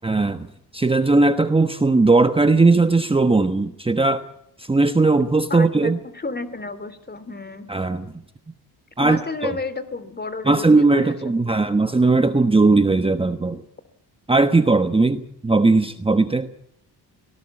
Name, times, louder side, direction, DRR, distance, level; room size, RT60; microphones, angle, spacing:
voice 1, 0.0-0.5 0.7-4.2 4.6-6.0 7.7-8.1 9.0-9.5 10.5-13.6 14.3-16.5, right 3 dB, 15° right, 9 dB, 1.1 m, -18 dB
voice 2, 5.5-7.7 9.0-11.6, left 3 dB, 25° left, 14 dB, 3.0 m, -32 dB
25.5 x 18.5 x 8.6 m, 0.80 s
cardioid pair, 120°, 40 cm